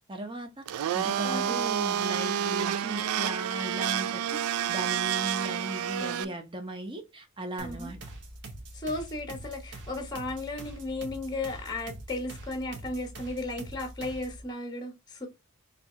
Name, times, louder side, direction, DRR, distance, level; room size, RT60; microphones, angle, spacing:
voice 1, 0.1-8.0, right 1 dB, 20° right, 0.8 m, -37 dB
Domestic sounds home sounds, 0.7-6.2, right 9 dB, 75° right, 0.3 m, -29 dB
voice 2, 1.2-1.6 6.0-6.3 7.6-7.9 8.7-15.3, left 2 dB, 20° left, 0.8 m, -35 dB
sound 1, 7.6-14.4, right 2 dB, 50° right, 0.8 m, -44 dB
3.4 x 2.7 x 4.2 m
head